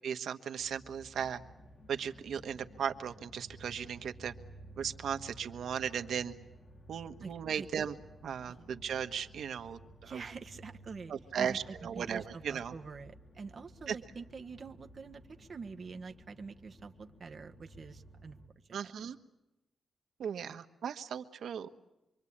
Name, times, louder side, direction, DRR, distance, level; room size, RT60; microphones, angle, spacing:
voice 1, 0.0-1.4 1.9-4.3 4.8-6.3 6.9-7.9 8.2-10.2 11.1-12.7 13.9-14.0 18.7-19.2 20.2-21.7, right 8 dB, 80° right, 8 dB, 1.3 m, -37 dB
sound 1, 0.6-18.5, right 1 dB, 25° left, 4.3 m, -55 dB
voice 2, 7.2-7.7 8.5-8.7 10.0-18.4 18.7-18.9, right 4 dB, 45° right, 6 dB, 1.4 m, -46 dB
26.5 x 24.0 x 8.7 m, 0.96 s
cardioid pair, 110°, 0 cm